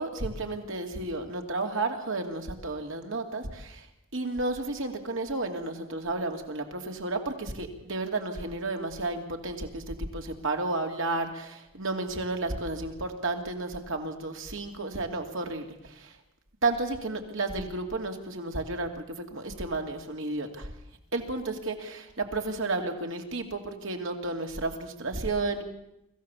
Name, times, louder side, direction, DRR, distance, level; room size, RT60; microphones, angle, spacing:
voice 1, 0.0-3.9 4.1-16.2 16.6-20.7 21.1-25.6, right 2 dB, 65° right, 4 dB, 2.7 m, -32 dB
25.0 x 15.5 x 7.2 m, 0.83 s
head